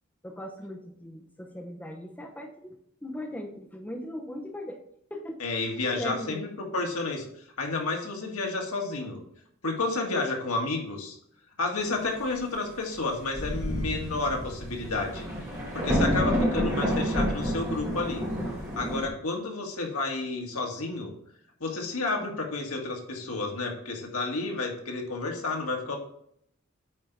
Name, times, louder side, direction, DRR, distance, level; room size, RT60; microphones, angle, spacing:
voice 1, 0.2-4.8 5.1-6.5 15.9-16.4, equal, 5° left, 1 dB, 0.7 m, -38 dB
voice 2, 5.4-6.5 6.7-7.2 7.6-9.2 9.6-11.1 11.6-15.3 15.7-18.2 18.7-21.1 21.6-26.0, left 3 dB, 80° left, 1 dB, 1.7 m, -31 dB
Thunder, 12.9-13.0 13.3-19.1, equal, 15° right, 2.0 m, -29 dB
8.6 x 4.0 x 4.6 m, 0.70 s
head